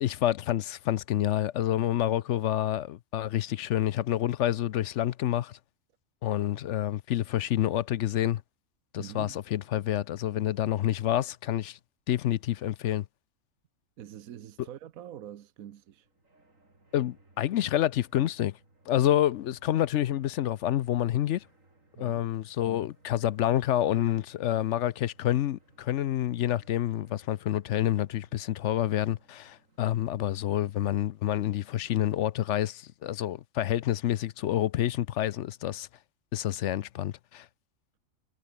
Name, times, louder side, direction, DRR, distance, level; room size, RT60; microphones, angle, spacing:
voice 1, 0.0-5.6 6.2-8.4 8.9-11.8 12.1-13.1 16.9-18.6 18.9-21.4 22.0-35.9 36.3-37.5, left 12 dB, 65° left, 0.8 m, -28 dB
voice 2, 9.0-9.4 14.0-16.1 21.9-22.2, right 10 dB, 85° right, 1.3 m, -44 dB
sound 1, 15.6-31.4, right 2 dB, 70° right, 5.6 m, -63 dB
omnidirectional pair, 1.4 m